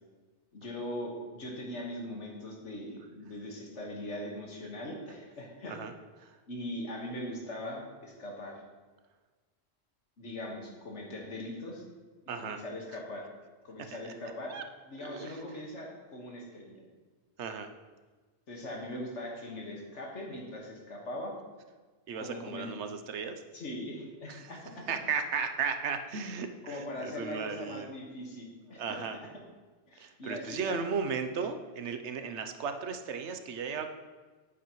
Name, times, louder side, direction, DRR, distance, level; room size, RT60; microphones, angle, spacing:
voice 1, 0.5-5.8 6.5-8.6 10.2-11.8 12.4-13.3 13.6-14.6 14.9-16.8 18.5-21.3 22.2-22.7 23.5-24.6 26.6-29.3 29.9-30.8, left 1 dB, 80° left, 0 dB, 1.9 m, -40 dB
voice 2, 12.3-12.6 14.5-14.6 15.0-15.4 17.4-17.7 22.1-23.4 24.3-24.5 24.9-27.9 28.8-29.2 30.0-33.9, right 5 dB, 75° right, 7 dB, 1.0 m, -35 dB
9.6 x 8.4 x 3.1 m, 1.3 s
omnidirectional pair, 1.2 m